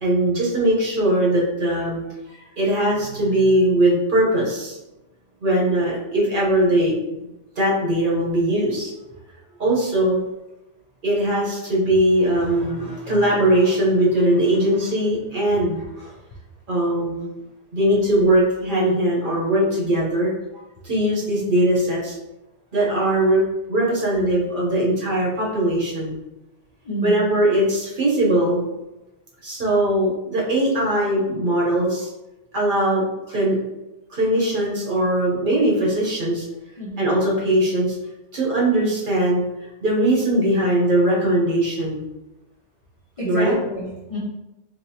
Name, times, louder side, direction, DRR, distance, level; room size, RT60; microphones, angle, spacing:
voice 1, 0.0-2.0 2.3-4.8 5.4-7.2 7.6-8.9 9.6-10.2 11.0-16.1 16.7-17.3 17.7-20.3 20.8-22.1 22.7-23.4 23.7-26.2 27.0-28.7 29.4-32.1 32.5-33.6 34.1-36.4 37.0-38.0 38.3-39.4 39.8-42.0 43.2-43.6, right 1 dB, 50° right, -4 dB, 1.0 m, -20 dB
voice 2, 26.8-27.3 36.8-37.1 43.2-44.2, equal, 50° left, -3 dB, 0.4 m, -29 dB
3.3 x 2.9 x 2.7 m, 0.98 s
omnidirectional pair, 1.2 m